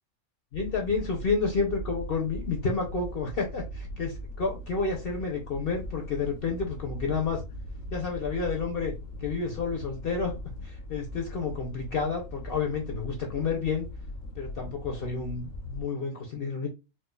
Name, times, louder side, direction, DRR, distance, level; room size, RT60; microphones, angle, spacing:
sound 1, 0.5-15.8, equal, 75° left, 1.0 m, -40 dB
voice 1, 0.5-7.4 7.9-8.9 9.2-10.3 10.6-13.9 14.4-16.7, left 4 dB, 55° left, 0.8 m, -30 dB
4.4 x 2.4 x 2.3 m
omnidirectional pair, 1.4 m